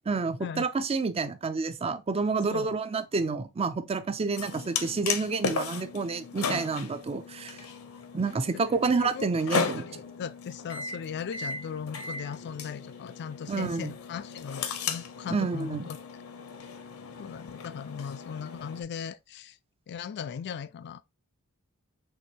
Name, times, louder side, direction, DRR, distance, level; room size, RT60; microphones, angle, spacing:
voice 1, 0.1-7.6 8.1-9.9 13.5-13.9 15.3-15.9, right 4 dB, 25° right, 0.4 m, -29 dB
sound 1, 4.4-18.8, left 5 dB, 70° left, 0.7 m, -36 dB
voice 2, 8.9-16.0 17.2-19.6 19.9-21.0, left 7 dB, 50° left, 0.3 m, -38 dB
6.2 x 2.6 x 2.8 m
head